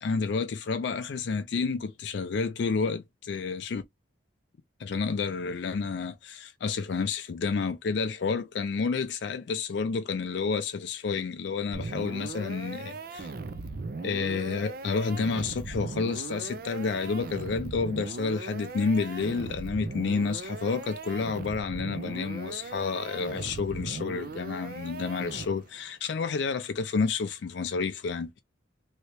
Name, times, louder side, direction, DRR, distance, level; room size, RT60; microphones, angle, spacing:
voice 1, 0.0-3.8 4.8-13.3 14.0-28.4, left 4 dB, 65° left, 0.4 m, -30 dB
sound 1, 11.7-25.8, right 3 dB, 50° right, 0.4 m, -39 dB
3.1 x 2.8 x 2.9 m
head